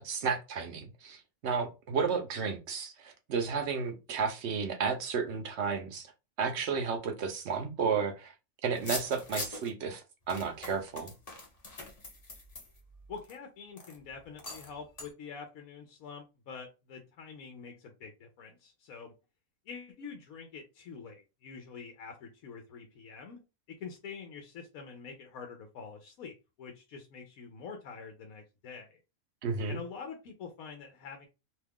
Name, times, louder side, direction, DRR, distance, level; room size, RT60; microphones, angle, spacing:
voice 1, 0.0-6.1 6.4-8.3 8.6-11.1 29.4-29.8, right 5 dB, 60° right, 0.9 m, -32 dB
sound 1, 8.7-9.7 10.3-13.4 13.8-14.0 14.4-14.7 15.0-15.1, left 2 dB, 30° left, 0.8 m, -41 dB
voice 2, 13.1-19.1 19.7-23.4 23.7-29.0 29.7-31.3, left 5 dB, 80° left, 1.1 m, -46 dB
2.9 x 2.3 x 3.4 m
omnidirectional pair, 1.5 m